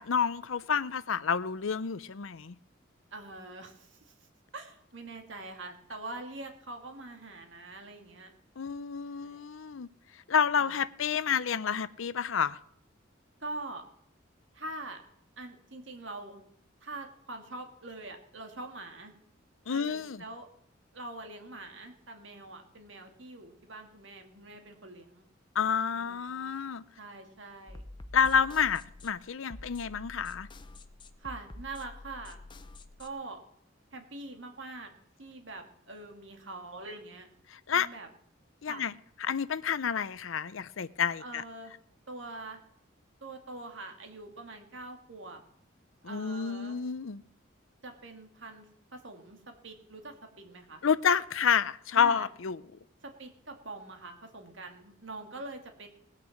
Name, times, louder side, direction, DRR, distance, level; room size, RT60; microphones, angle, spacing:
voice 1, 0.0-2.5 8.6-9.9 10.3-12.6 19.7-20.2 25.5-26.8 28.1-30.5 37.5-37.9 38.6-38.9 39.2-41.4 46.0-47.2 50.8-52.6, left 7 dB, 80° left, 0.6 m, -29 dB
voice 2, 3.1-4.3 4.5-8.3 9.1-9.4 10.6-10.7 13.4-13.8 14.5-15.0 15.4-16.4 16.8-19.1 19.7-20.5 20.9-25.3 26.0-26.5 27.0-27.8 31.2-32.4 33.0-33.4 33.9-34.9 35.2-37.3 37.7-38.1 38.7-38.9 41.2-41.7 42.1-42.6 43.2-45.4 46.0-46.8 47.8-48.7 48.9-50.8 52.0-52.3 53.0-55.9, right 2 dB, 70° right, 2.3 m, -44 dB
sound 1, 27.7-33.1, left 2 dB, 25° left, 0.7 m, -48 dB
19.5 x 6.6 x 7.2 m
head